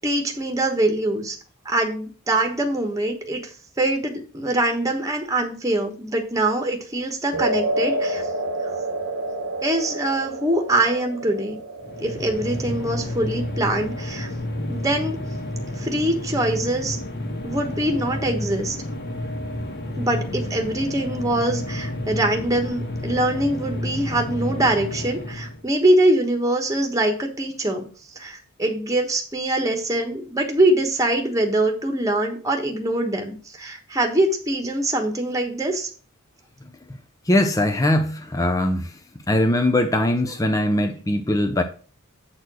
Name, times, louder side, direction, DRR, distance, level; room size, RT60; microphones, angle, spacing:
voice 1, 0.0-1.4 1.6-3.4 3.8-8.2 9.6-11.6 12.0-14.3 14.7-15.2 15.8-17.0 17.4-18.7 20.0-27.8 28.2-35.9, right 1 dB, 15° right, 1.2 m, -23 dB
sound 1, 7.3-15.7, right 1 dB, 60° right, 1.1 m, -30 dB
sound 2, 11.8-25.6, left 1 dB, 50° left, 1.5 m, -30 dB
voice 2, 37.3-38.9 39.3-41.6, left 1 dB, 15° left, 0.6 m, -21 dB
8.0 x 4.3 x 6.1 m
head